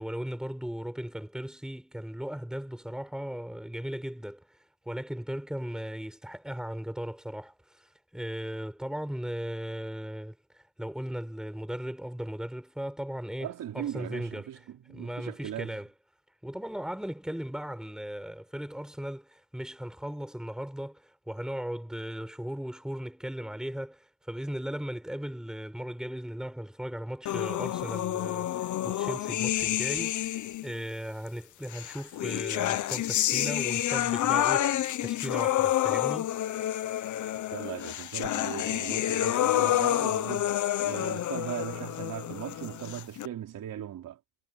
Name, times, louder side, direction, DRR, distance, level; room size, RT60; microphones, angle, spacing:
voice 1, 0.0-4.6 4.9-14.5 14.9-15.9 16.4-30.3 30.6-36.3, equal, ahead, 5.3 m, -37 dB
voice 2, 13.4-15.8 37.5-40.6 40.8-44.2, right 11 dB, 65° right, 4.7 m, -38 dB
sound 1, 27.3-30.7 31.7-43.3, left 12 dB, 60° left, 0.8 m, -29 dB
cardioid pair, 170°, 34 cm